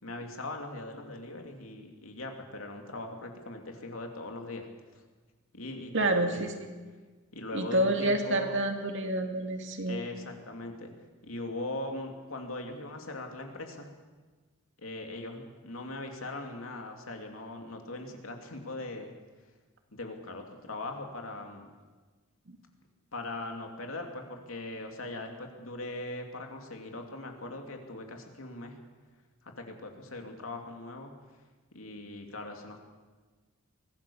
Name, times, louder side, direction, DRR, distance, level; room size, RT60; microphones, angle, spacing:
voice 1, 0.0-5.0 5.5-6.5 7.3-8.5 9.9-10.9 11.2-13.9 14.8-19.1 19.9-21.7 23.1-28.8 29.4-31.1 31.7-32.8, left 2 dB, 80° left, 3 dB, 2.9 m, -40 dB
voice 2, 5.9-6.7 7.5-10.0 22.5-22.6, right 1 dB, 65° right, 4 dB, 2.4 m, -28 dB
23.0 x 16.0 x 7.2 m, 1.3 s
head